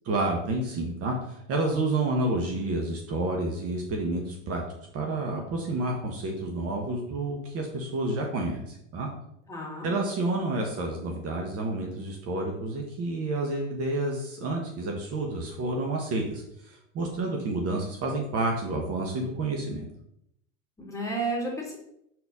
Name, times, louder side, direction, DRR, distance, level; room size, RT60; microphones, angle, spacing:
voice 1, 0.1-4.6 4.9-9.1 9.8-19.8, right 2 dB, 40° right, 1 dB, 1.2 m, -29 dB
voice 2, 9.5-9.9 20.8-21.8, right 2 dB, 10° left, -3 dB, 2.3 m, -32 dB
4.4 x 4.1 x 5.4 m, 0.75 s
hypercardioid pair, 90°, 37 cm